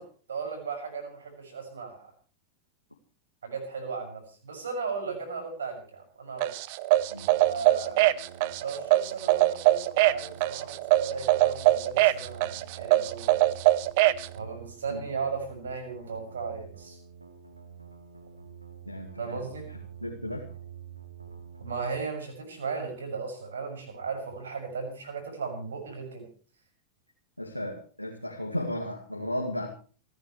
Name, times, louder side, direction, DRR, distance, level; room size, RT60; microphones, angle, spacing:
voice 1, 0.0-2.1 3.4-6.5 7.4-8.0 8.6-13.5 14.3-17.0 19.2-19.7 21.6-26.3, right 5 dB, 65° right, 4 dB, 6.5 m, -36 dB
sound 1, 6.4-14.3, right 16 dB, 50° right, 0.8 m, -22 dB
sound 2, 6.9-21.9, right 7 dB, 85° right, 2.7 m, -47 dB
voice 2, 18.9-19.4 20.0-20.5 27.4-29.7, left 1 dB, 90° left, -1 dB, 2.2 m, -34 dB
28.5 x 10.5 x 3.2 m, 0.39 s
figure-of-eight pair, 90°, 0 cm